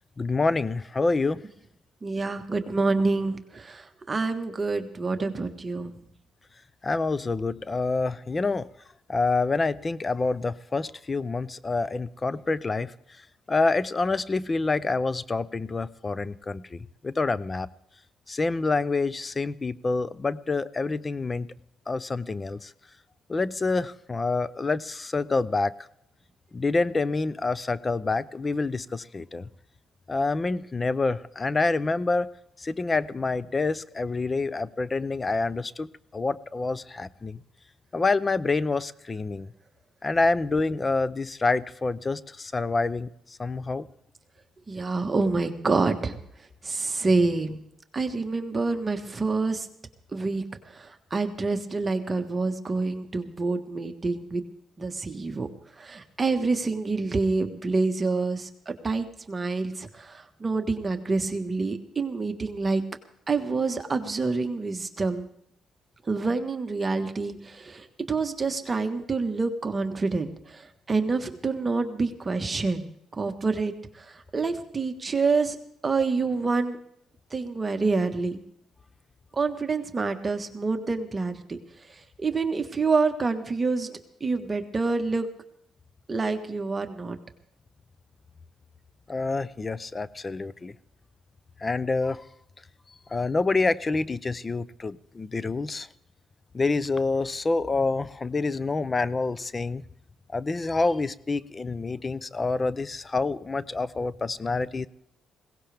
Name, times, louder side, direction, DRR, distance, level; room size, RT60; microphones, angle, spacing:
voice 1, 0.2-1.4 6.8-8.7 9.1-12.9 13.5-17.7 18.3-21.5 21.9-22.7 23.3-25.7 26.5-29.5 30.1-32.3 32.6-37.4 37.9-39.5 40.0-43.1 43.4-43.9 89.1-90.7 91.6-92.2 93.1-95.9 96.5-99.8 100.3-104.9, left 3 dB, 30° left, 18 dB, 0.6 m, -27 dB
voice 2, 2.0-5.9 44.7-46.2 46.6-47.6 47.9-49.7 50.1-54.4 54.8-55.5 55.8-62.8 63.3-65.3 66.1-70.6 70.9-72.9 73.2-73.7 74.3-75.6 75.8-76.8 77.3-78.4 79.3-81.6 82.2-85.3 86.1-87.2, right 3 dB, 30° right, 6 dB, 1.5 m, -27 dB
21.0 x 17.5 x 3.5 m, 0.73 s
cardioid pair, 90°, 0 cm